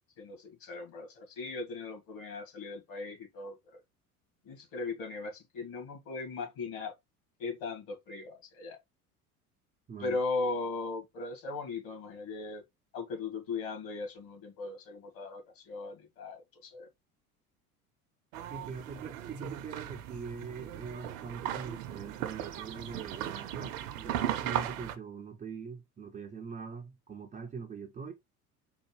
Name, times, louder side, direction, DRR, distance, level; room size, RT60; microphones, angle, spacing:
voice 1, 0.2-3.8 4.4-6.9 7.4-8.8 10.0-12.6 12.9-16.9, left 3 dB, 50° left, 1.8 m, -38 dB
voice 2, 9.9-10.2 18.5-28.1, right 5 dB, 20° right, 0.5 m, -43 dB
sound 1, 18.3-25.0, right 11 dB, 60° right, 0.7 m, -37 dB
4.4 x 2.3 x 3.2 m
figure-of-eight pair, 70°, 44 cm